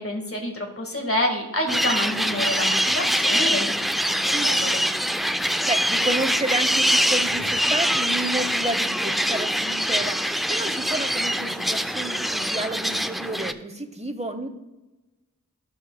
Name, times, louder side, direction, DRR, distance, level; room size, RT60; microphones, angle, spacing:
voice 1, 0.0-4.8, left 1 dB, 45° left, 2 dB, 1.7 m, -28 dB
sound 1, 1.7-13.5, equal, ahead, 0.4 m, -24 dB
voice 2, 5.5-14.5, right 2 dB, 20° right, 7 dB, 1.0 m, -31 dB
14.5 x 6.2 x 2.3 m, 1.0 s
wide cardioid pair, 50°, 33 cm